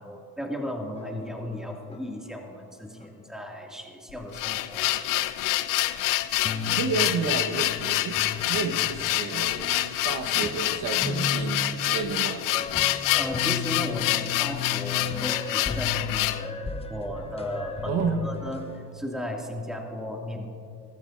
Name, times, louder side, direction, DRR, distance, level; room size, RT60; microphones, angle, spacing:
voice 1, 0.0-4.9 13.2-20.5, equal, ahead, 0 dB, 2.3 m, -35 dB
sound 1, 1.0-2.0 2.3-2.4 2.8-3.1 4.2-4.3 4.7-4.8 5.1-5.2 5.8-5.9 6.4-18.9, left 4 dB, 15° left, 1.0 m, -36 dB
sound 2, 4.1-16.5, left 15 dB, 70° left, 0.6 m, -27 dB
voice 2, 6.7-8.2 8.5-12.4 17.9-18.2, right 5 dB, 70° right, 3 dB, 1.3 m, -31 dB
24.0 x 14.0 x 2.6 m, 2.4 s
cardioid pair, 105°, 34 cm